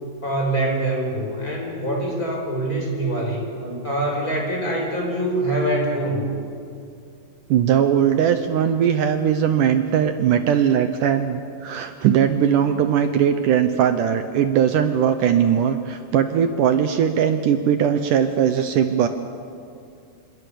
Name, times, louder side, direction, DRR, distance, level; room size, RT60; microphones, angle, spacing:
voice 1, 0.2-6.3, right 1 dB, 20° left, -1 dB, 6.2 m, -24 dB
voice 2, 7.5-19.1, right 8 dB, 75° right, 8 dB, 2.0 m, -19 dB
28.5 x 26.5 x 7.0 m, 2.4 s
omnidirectional pair, 4.7 m